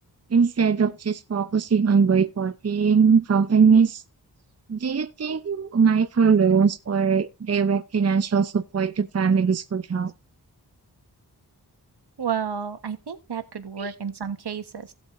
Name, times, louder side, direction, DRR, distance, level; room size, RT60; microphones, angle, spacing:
voice 1, 0.3-4.0 4.7-10.1 13.8-13.9, right 6 dB, 40° right, 0.7 m, -21 dB
voice 2, 12.2-14.9, right 7 dB, 75° right, 1.4 m, -31 dB
17.0 x 7.8 x 2.6 m
wide cardioid pair, 90°, 41 cm